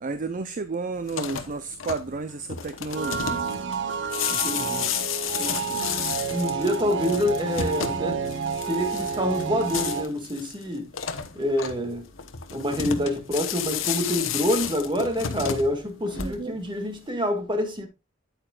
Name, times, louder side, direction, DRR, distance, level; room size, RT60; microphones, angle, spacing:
voice 1, 0.0-3.4 16.1-16.6, right 4 dB, 40° right, 0.5 m, -32 dB
sound 1, 1.0-16.7, left 8 dB, 75° left, 1.0 m, -32 dB
sound 2, 2.9-10.0, right 5 dB, 65° right, 0.9 m, -30 dB
voice 2, 4.3-4.9 5.4-5.8 6.3-8.3 8.7-10.9 11.4-12.1 12.5-17.9, left 1 dB, 25° right, 1.8 m, -27 dB
9.0 x 8.7 x 2.4 m
head